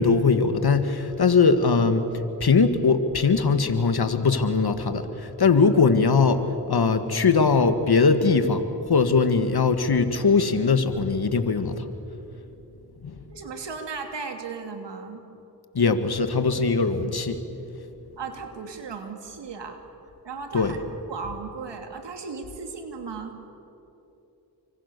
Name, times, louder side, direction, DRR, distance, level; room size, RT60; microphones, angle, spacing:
voice 1, 0.0-2.1 2.4-6.4 6.7-11.9 13.0-13.2 15.7-17.4 20.5-20.8, left 4 dB, 65° left, 8 dB, 2.1 m, -21 dB
voice 2, 13.3-15.2 18.2-19.8 20.2-23.3, right 5 dB, 90° right, 4 dB, 2.8 m, -36 dB
30.0 x 24.5 x 7.0 m, 3.0 s
cardioid pair, 40°, 41 cm